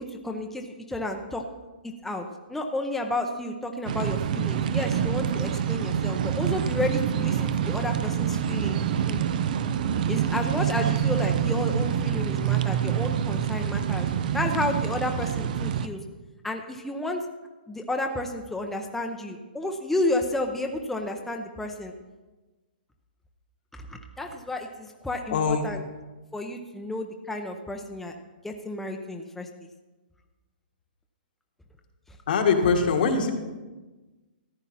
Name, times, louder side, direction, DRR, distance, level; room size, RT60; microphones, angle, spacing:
voice 1, 0.0-1.4 2.0-9.2 10.1-14.1 14.3-16.0 16.4-17.2 17.7-21.9 23.7-25.8 26.3-28.1 28.4-29.5, left 1 dB, 5° left, 2 dB, 0.8 m, -31 dB
sound 1, 3.9-15.9, right 9 dB, 55° right, 0.7 m, -26 dB
voice 2, 25.3-25.7 32.3-33.3, left 5 dB, 65° left, 3 dB, 1.8 m, -22 dB
14.5 x 9.8 x 4.2 m, 1.2 s
hypercardioid pair, 135°, 5 cm